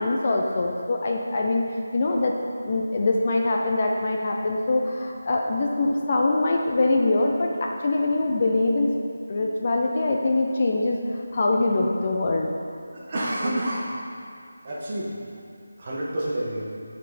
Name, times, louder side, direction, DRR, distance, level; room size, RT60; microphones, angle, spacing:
voice 1, 0.0-1.6 1.9-2.3 2.6-8.9 9.3-11.0 11.3-12.5, left 2 dB, 35° left, 0 dB, 0.7 m, -23 dB
voice 2, 12.9-14.0 14.6-15.2 15.8-16.6, right 1 dB, 35° right, -5 dB, 1.5 m, -28 dB
11.0 x 4.4 x 4.3 m, 2.5 s
figure-of-eight pair, 170°, 0 cm